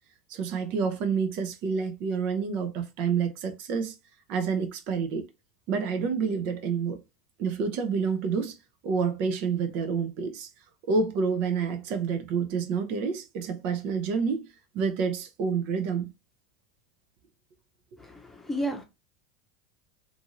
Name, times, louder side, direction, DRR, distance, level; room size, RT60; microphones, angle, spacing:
voice 1, 0.3-3.9 4.3-5.3 5.7-7.0 7.4-8.6 8.8-10.5 10.9-14.5 14.7-16.1, right 5 dB, 55° right, 0.6 m, -28 dB
voice 2, 18.0-18.8, right 1 dB, 10° left, 0.8 m, -32 dB
2.6 x 2.6 x 2.8 m
hypercardioid pair, 95°, 3 cm